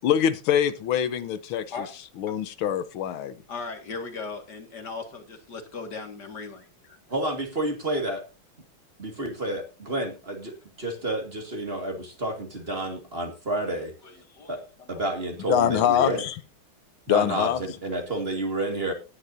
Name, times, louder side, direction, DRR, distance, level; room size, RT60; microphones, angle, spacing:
voice 1, 0.0-1.6 2.2-3.3 15.5-16.4 17.1-17.6, left 9 dB, 85° left, 13 dB, 1.7 m, -24 dB
voice 2, 3.5-7.0 14.0-15.1 15.9-16.1, left 4 dB, 55° left, 5 dB, 2.5 m, -38 dB
voice 3, 7.1-8.2 9.0-13.9 14.5-14.6 14.9-16.2 17.1-18.9, right 1 dB, 30° right, 4 dB, 2.2 m, -30 dB
18.0 x 10.0 x 2.7 m, 0.30 s
omnidirectional pair, 2.2 m